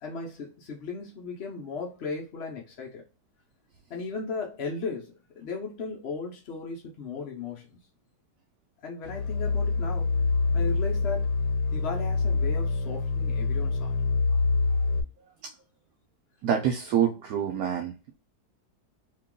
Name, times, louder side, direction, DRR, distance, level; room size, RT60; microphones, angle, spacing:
voice 1, 0.0-3.0 3.9-7.8 8.8-10.1 10.5-11.3 11.7-13.9, left 4 dB, 55° left, 0.7 m, -36 dB
sound 1, 9.1-15.0, left 4 dB, 85° left, 1.3 m, -26 dB
voice 2, 16.4-18.1, right 8 dB, 70° right, 1.0 m, -26 dB
2.9 x 2.9 x 3.6 m
omnidirectional pair, 1.8 m